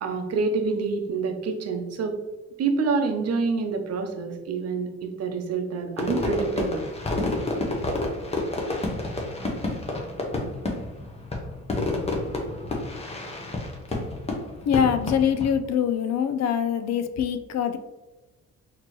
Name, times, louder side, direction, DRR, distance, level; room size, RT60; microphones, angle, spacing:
voice 1, 0.0-2.2 2.6-6.8 7.3-7.4, right 4 dB, 55° right, 5 dB, 0.7 m, -27 dB
Fireworks, 6.0-15.5, left 2 dB, 20° left, 0.9 m, -29 dB
voice 2, 14.6-17.8, left 8 dB, 60° left, 9 dB, 0.5 m, -24 dB
4.1 x 3.0 x 3.1 m, 1.1 s
cardioid pair, 90°, 30 cm